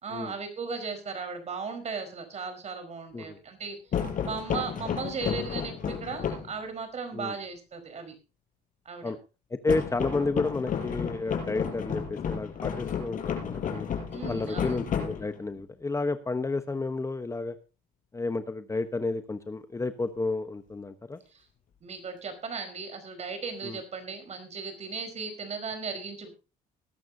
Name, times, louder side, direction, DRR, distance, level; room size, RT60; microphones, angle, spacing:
voice 1, 0.0-3.8 4.2-8.1 8.8-9.1 14.1-14.8 21.3-21.4 21.8-26.3, right 5 dB, 40° right, 8 dB, 4.8 m, -36 dB
sound 1, 3.9-6.6 9.7-15.6, left 7 dB, 55° left, 5.1 m, -32 dB
voice 2, 9.6-13.9 14.3-17.6 18.1-21.2 23.6-23.8, left 3 dB, 20° left, 9 dB, 1.1 m, -31 dB
20.0 x 12.0 x 2.8 m, 0.30 s
cardioid pair, 110°, 17 cm